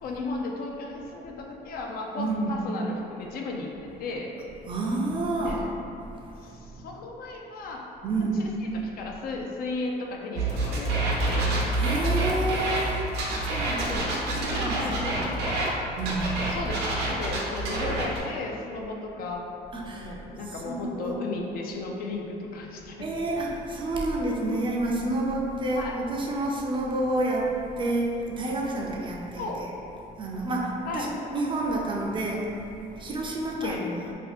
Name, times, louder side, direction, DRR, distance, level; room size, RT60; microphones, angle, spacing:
voice 1, 0.0-4.3 5.4-5.7 6.4-7.9 8.2-8.5 8.7-11.5 12.7-12.9 13.9-15.8 16.5-19.5 20.0-23.1 25.7-25.9 29.4-29.7 30.9-31.1 33.6-33.8, left 3 dB, 60° left, 0 dB, 0.5 m, -35 dB
voice 2, 2.2-2.6 4.7-5.7 6.7-6.8 8.0-8.5 11.7-13.0 13.4-15.2 16.0-16.5 19.7-20.1 20.5-21.2 23.0-29.7 30.2-32.6 33.0-34.0, right 2 dB, 30° right, -2 dB, 0.4 m, -29 dB
sound 1, 10.4-15.7 16.0-18.2, right 2 dB, 80° right, 0.7 m, -27 dB
2.7 x 2.3 x 4.1 m, 2.8 s
cardioid pair, 110°, 17 cm